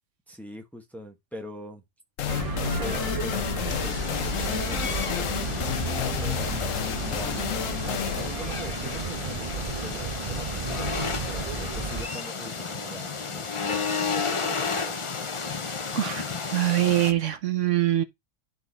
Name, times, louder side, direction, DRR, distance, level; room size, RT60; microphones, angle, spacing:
voice 1, 0.3-1.8 2.5-3.5 3.8-6.4 7.0-14.9, right 1 dB, ahead, 1.1 m, -42 dB
sound 1, 2.2-9.6, left 10 dB, 75° left, 1.1 m, -31 dB
sound 2, 2.3-12.0, right 3 dB, 25° right, 1.5 m, -33 dB
sound 3, 3.7-17.1, left 5 dB, 35° left, 0.6 m, -33 dB
voice 2, 15.9-16.3 16.5-18.0, right 14 dB, 70° right, 1.0 m, -23 dB
11.0 x 4.0 x 4.1 m
omnidirectional pair, 1.4 m